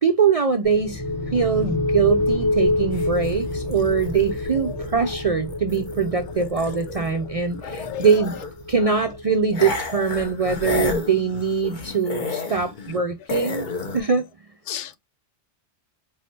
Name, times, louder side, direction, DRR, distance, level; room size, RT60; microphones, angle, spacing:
voice 1, 0.0-8.4 8.7-13.7 13.9-14.3, right 6 dB, 55° right, 0.4 m, -22 dB
sound 1, 0.6-12.2, left 2 dB, 25° left, 0.5 m, -28 dB
sound 2, 2.9-7.2 7.4-8.7 9.5-13.0 13.3-14.0, left 4 dB, 45° left, 1.0 m, -32 dB
voice 2, 4.6-5.2 7.5-8.3 8.8-9.0 9.9-10.2 14.7-15.0, left 9 dB, 80° left, 0.9 m, -36 dB
4.5 x 3.4 x 2.7 m
omnidirectional pair, 1.2 m